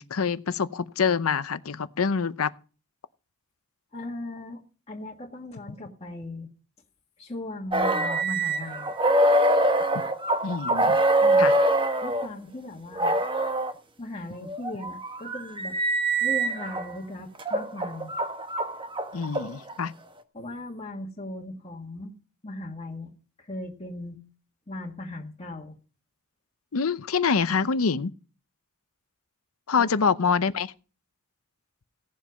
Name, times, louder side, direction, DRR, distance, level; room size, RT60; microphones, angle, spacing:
voice 1, 0.0-2.5 10.4-11.0 11.4-11.5 19.1-19.9 26.7-28.1 29.7-30.7, left 5 dB, 80° left, 0.7 m, -25 dB
voice 2, 3.9-4.6 4.9-6.5 7.2-8.9 11.2-11.5 12.0-13.2 14.0-15.8 16.2-18.1 20.3-22.1 22.4-23.1 23.4-24.2 24.7-25.8 29.8-30.1, left 1 dB, 30° left, 1.7 m, -38 dB
sound 1, 7.7-12.3 13.0-13.7 14.5-16.9 17.4-19.8, right 1 dB, 25° right, 1.1 m, -24 dB
17.0 x 7.4 x 5.2 m
head